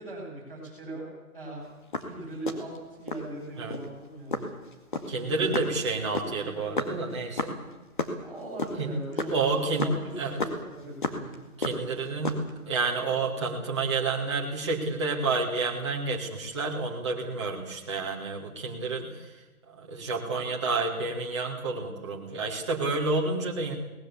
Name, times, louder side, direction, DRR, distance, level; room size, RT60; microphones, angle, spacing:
voice 1, 0.0-1.6 2.0-2.7 3.0-4.4 5.2-5.6 8.1-11.3, right 2 dB, 5° left, -9 dB, 7.7 m, -40 dB
sound 1, 1.7-3.3 3.7-3.9 4.3-8.1 8.4-11.4 11.6-12.6, left 3 dB, 35° left, 2.1 m, -32 dB
voice 2, 5.1-7.5 8.8-8.9 9.3-9.9 10.2-10.4 11.6-12.4 12.7-19.4 19.7-23.8, right 3 dB, 20° right, -3 dB, 2.1 m, -29 dB
22.5 x 19.5 x 7.2 m, 1.1 s
hypercardioid pair, 180°, 44 cm